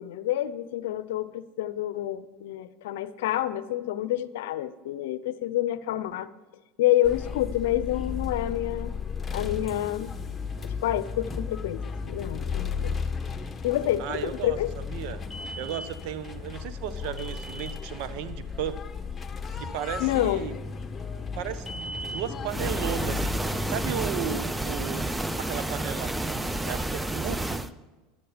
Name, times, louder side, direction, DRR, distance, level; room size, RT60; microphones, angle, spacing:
voice 1, 0.0-6.3 6.8-8.9 9.3-10.1 10.6-13.0 13.6-14.7 20.0-20.5, left 13 dB, 75° left, 15 dB, 0.6 m, -28 dB
sound 1, 7.0-24.0, left 5 dB, 20° left, 1.4 m, -35 dB
voice 2, 14.0-14.6 14.9-15.2 15.6-18.8 19.6-20.5 21.4-23.3 23.7-25.1 25.4-27.6, right 9 dB, 65° right, 12 dB, 1.0 m, -35 dB
sound 2, 22.5-27.7, right 1 dB, 10° right, 0.7 m, -30 dB
13.5 x 11.5 x 5.1 m, 1.2 s
hypercardioid pair, 85°, 0 cm